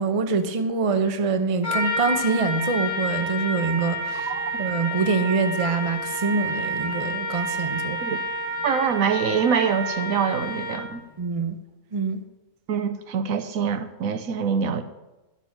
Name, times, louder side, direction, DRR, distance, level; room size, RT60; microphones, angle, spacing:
voice 1, 0.0-4.3 4.6-8.0 11.2-11.6 11.9-12.2, right 4 dB, 35° right, 8 dB, 0.6 m, -25 dB
Trumpet, 1.6-11.0, equal, 10° left, 1.7 m, -29 dB
voice 2, 8.6-11.0 12.7-14.8, right 7 dB, 70° right, 9 dB, 1.1 m, -25 dB
11.5 x 6.9 x 5.8 m, 1.0 s
omnidirectional pair, 1.5 m